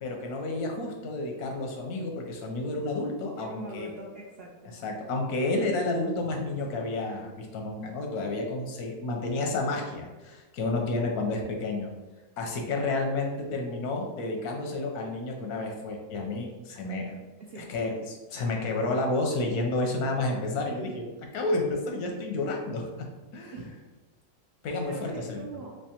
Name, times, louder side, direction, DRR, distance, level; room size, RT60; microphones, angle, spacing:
voice 1, 0.0-3.9 4.8-11.9 12.4-17.2 17.6-23.1 23.3-23.5 24.6-25.4, left 2 dB, 85° left, 2 dB, 1.2 m, -30 dB
voice 2, 3.3-4.7 17.4-17.7 23.5-23.8 24.8-25.8, right 3 dB, 85° right, -3 dB, 0.5 m, -41 dB
3.4 x 3.0 x 2.8 m, 1.2 s
omnidirectional pair, 1.6 m